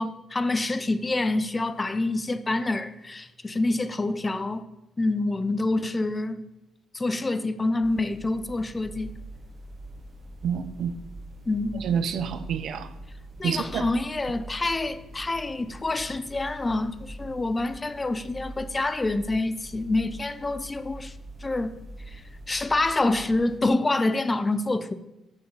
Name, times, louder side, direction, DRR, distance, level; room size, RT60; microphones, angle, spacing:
voice 1, 0.0-4.7 5.0-6.4 6.9-9.1 11.5-11.9 13.4-21.1 21.4-21.7 22.1-24.9, left 2 dB, 20° left, 0.6 m, -27 dB
sound 1, 7.8-23.6, right 1 dB, 40° right, 1.5 m, -43 dB
voice 2, 10.4-11.0 11.8-12.9 13.4-13.9, right 7 dB, 70° right, 0.6 m, -28 dB
7.8 x 5.4 x 7.0 m
cardioid pair, 90°, 0 cm